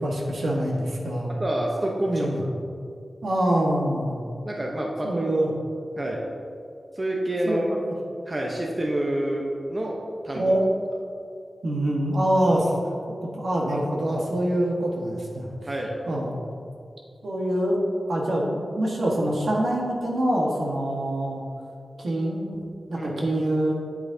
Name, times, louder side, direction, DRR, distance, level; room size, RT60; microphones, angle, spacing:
voice 1, 0.0-1.3 2.1-2.4 3.2-4.3 5.0-5.5 7.4-7.9 10.3-10.7 11.6-12.7 13.2-15.5 16.1-16.4 17.2-17.8 18.1-21.4 22.0-23.7, right 1 dB, 75° right, -2 dB, 1.4 m, -25 dB
voice 2, 1.3-2.3 4.4-5.5 6.0-6.2 7.0-7.6 8.3-10.0 10.2-10.4 15.7-15.9 22.9-23.2, right 1 dB, 30° right, -1 dB, 0.8 m, -28 dB
8.9 x 8.1 x 2.7 m, 2.5 s
wide cardioid pair, 95°, 0 cm